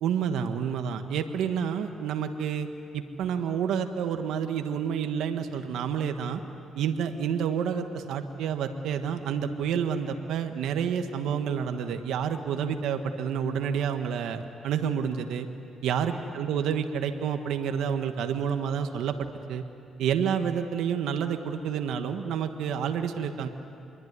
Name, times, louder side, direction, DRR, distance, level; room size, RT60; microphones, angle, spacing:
voice 1, 0.0-2.7 2.9-6.4 6.7-15.5 15.8-19.6 20.0-23.5, right 7 dB, 85° right, 7 dB, 1.5 m, -29 dB
26.5 x 22.5 x 9.7 m, 2.7 s
cardioid pair, 90°, 0 cm